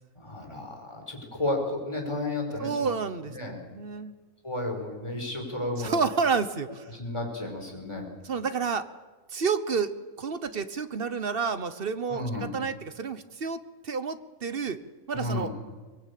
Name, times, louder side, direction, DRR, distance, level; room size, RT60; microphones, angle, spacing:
voice 1, 0.2-2.9 3.3-3.6 4.4-6.0 6.9-8.0 12.1-12.5 15.1-15.5, left 2 dB, 20° left, 1 dB, 5.0 m, -32 dB
voice 2, 2.6-4.1 5.8-6.9 8.2-8.9 9.3-9.9 10.2-14.8 15.1-15.5, right 5 dB, 45° right, 12 dB, 1.1 m, -30 dB
23.5 x 20.5 x 8.4 m, 1.3 s
omnidirectional pair, 1.5 m